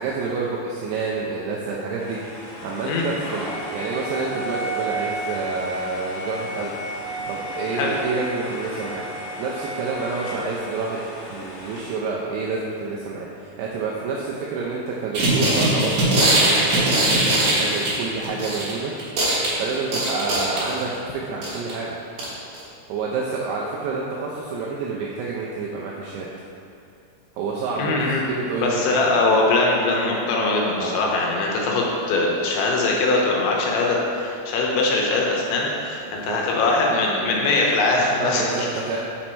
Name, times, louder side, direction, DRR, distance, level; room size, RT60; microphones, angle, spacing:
voice 1, 0.0-6.8 7.3-9.0 9.4-11.0 11.3-18.9 19.2-22.0 22.9-26.3 27.3-29.1 30.8-31.1 36.1-36.4 38.2-39.0, right 4 dB, 85° right, -4 dB, 2.4 m, -28 dB
sound 1, 2.0-11.8, right 1 dB, 65° left, 2.5 m, -33 dB
sound 2, 15.1-18.7 19.0-21.0 21.4-21.7 22.2-22.3 22.5-22.6, right 1 dB, 60° right, 2.2 m, -20 dB
voice 2, 27.8-28.2 28.6-38.7, left 2 dB, 80° left, -2 dB, 3.1 m, -21 dB
6.2 x 5.7 x 4.4 m, 2.6 s
omnidirectional pair, 5.4 m